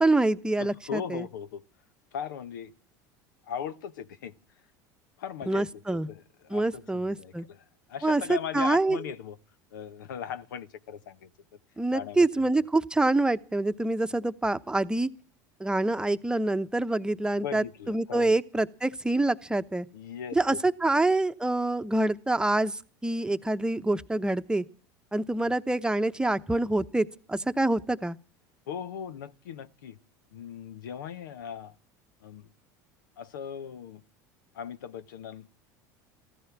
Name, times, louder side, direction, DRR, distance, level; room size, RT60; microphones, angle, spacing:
voice 1, 0.0-1.3 5.5-6.1 6.5-7.5 8.0-9.0 11.8-15.1 15.6-19.9 20.3-24.6 25.1-28.2, right 2 dB, 10° right, 0.9 m, -26 dB
voice 2, 0.6-1.6 2.1-2.7 3.5-4.3 5.2-9.4 9.7-11.3 11.9-12.5 17.4-18.3 19.9-20.6 25.4-25.5 28.7-30.0 30.3-31.7 32.2-32.5 33.2-34.0 34.5-35.5, left 8 dB, 90° left, 1.0 m, -38 dB
15.0 x 14.5 x 6.0 m
hypercardioid pair, 95°, 10 cm